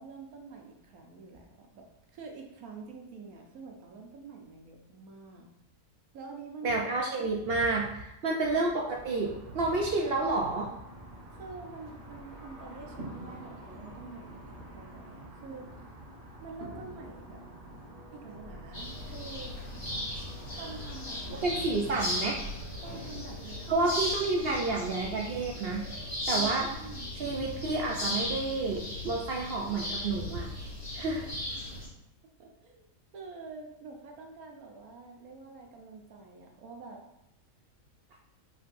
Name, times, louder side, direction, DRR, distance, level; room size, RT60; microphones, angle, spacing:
voice 1, 0.0-5.5 6.1-6.7 7.0-7.1 8.3-8.5 11.3-15.9 16.4-17.4 18.1-19.6 20.6-21.6 22.8-23.7 24.3-24.8 26.3-27.1 31.2-31.8 32.4-32.9 33.1-37.0, right 4 dB, 90° right, 2 dB, 1.3 m, -47 dB
voice 2, 6.6-10.7 21.4-22.4 23.7-25.8 26.3-26.7 27.1-30.5 30.9-31.3, right 3 dB, 60° right, -1 dB, 0.6 m, -30 dB
sound 1, 8.9-22.3, right 1 dB, 30° right, 1.1 m, -47 dB
sound 2, 18.7-31.9, left 1 dB, 50° left, 2.0 m, -37 dB
5.4 x 3.8 x 2.6 m, 0.83 s
omnidirectional pair, 1.5 m